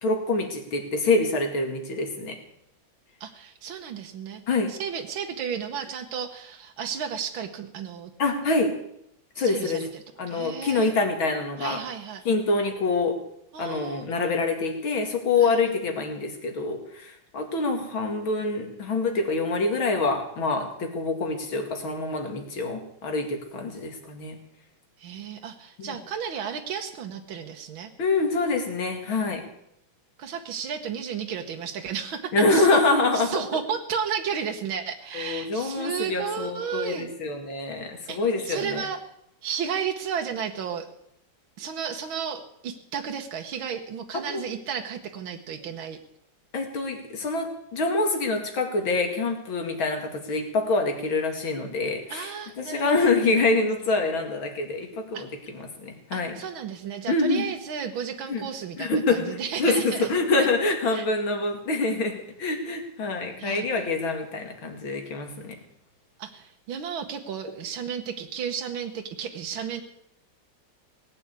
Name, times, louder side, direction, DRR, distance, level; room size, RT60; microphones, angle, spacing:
voice 1, 0.0-2.4 4.5-4.7 8.2-8.7 9.4-9.8 10.2-11.8 12.2-13.2 13.6-24.4 25.8-26.0 28.0-29.4 32.3-33.4 35.1-38.9 44.3-44.4 46.5-52.3 52.6-55.3 55.5-56.3 57.1-57.4 58.3-58.5 58.8-65.6, left 3 dB, 90° left, 4 dB, 3.1 m, -26 dB
voice 2, 3.2-4.4 4.7-8.1 9.4-11.0 11.6-12.2 13.5-14.1 15.4-15.6 25.0-27.9 30.2-32.7 33.1-37.1 38.1-38.2 38.4-39.0 39.4-40.9 41.6-46.0 52.1-53.1 55.1-55.2 56.1-60.1 60.4-60.5 60.9-61.1 63.4-63.7 66.2-69.8, right 7 dB, 85° right, 4 dB, 1.9 m, -33 dB
18.0 x 8.6 x 8.2 m, 0.76 s
omnidirectional pair, 2.1 m